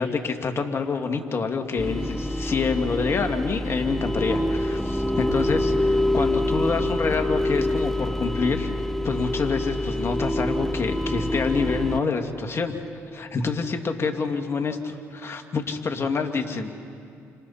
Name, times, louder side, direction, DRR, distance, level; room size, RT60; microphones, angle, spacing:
voice 1, 0.0-8.7 9.0-12.8 13.1-16.7, left 4 dB, 40° left, 4 dB, 2.3 m, -27 dB
sound 1, 1.8-12.0, left 1 dB, 5° left, 0.9 m, -26 dB
29.5 x 26.0 x 4.3 m, 2.5 s
supercardioid pair, 65°, 6 cm